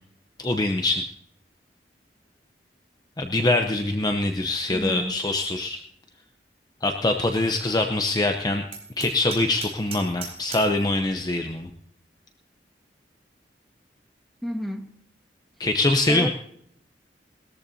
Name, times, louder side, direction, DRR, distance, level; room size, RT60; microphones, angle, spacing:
voice 1, 0.4-1.0 3.2-5.8 6.8-8.7 9.0-11.7 15.6-16.3, left 2 dB, 25° left, 0.7 m, -24 dB
voice 2, 4.7-5.1 14.4-14.8 16.1-16.3, equal, ahead, 1.5 m, -30 dB
Hammer, 8.7-10.8, right 5 dB, 35° right, 3.9 m, -39 dB
20.5 x 13.5 x 2.7 m
head